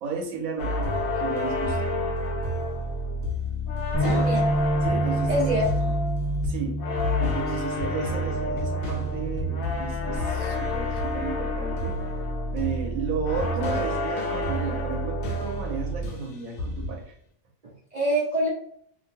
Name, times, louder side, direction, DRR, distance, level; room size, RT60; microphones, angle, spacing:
voice 1, 0.0-1.9 4.0-4.2 4.8-5.6 6.4-6.8 7.2-12.0 12.5-17.1, right 5 dB, 80° right, 2 dB, 1.1 m, -33 dB
sound 1, 0.6-16.3 16.6-17.0, left 1 dB, 80° left, 1.1 m, -28 dB
Bass guitar, 3.9-10.2, right 2 dB, 10° left, 1.2 m, -30 dB
voice 2, 4.0-4.4 5.3-5.9 17.6-18.5, equal, 55° right, -4 dB, 0.4 m, -26 dB
2.9 x 2.4 x 2.6 m, 0.67 s
omnidirectional pair, 1.5 m